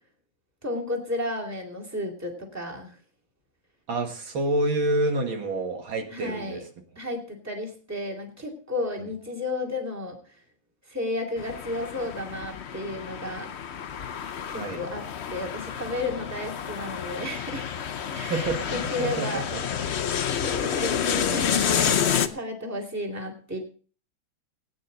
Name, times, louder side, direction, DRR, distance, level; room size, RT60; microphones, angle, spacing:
voice 1, 0.6-3.0 6.1-6.6 7.0-10.2 10.9-13.5 14.5-15.0 15.3-17.7 18.1-19.7 20.4-23.6, left 1 dB, 10° right, 1 dB, 2.3 m, -33 dB
voice 2, 3.9-6.6 14.6-14.8 18.3-19.6 20.2-20.4, right 1 dB, 75° right, 3 dB, 2.6 m, -28 dB
sound 1, 11.4-22.3, left 8 dB, 90° left, 0.5 m, -29 dB
18.5 x 9.5 x 3.9 m, 0.41 s
omnidirectional pair, 2.2 m